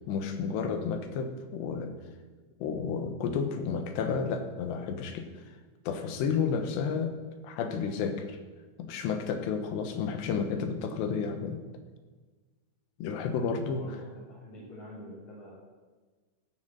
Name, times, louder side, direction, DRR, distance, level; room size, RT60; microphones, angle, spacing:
voice 1, 0.1-1.9 2.6-5.5 5.9-7.2 7.4-8.4 8.8-11.6 13.0-13.8, left 6 dB, 80° left, 7 dB, 3.2 m, -31 dB
voice 2, 13.7-15.5, equal, 45° left, -8 dB, 4.3 m, -46 dB
14.5 x 7.5 x 7.8 m, 1.4 s
omnidirectional pair, 5.2 m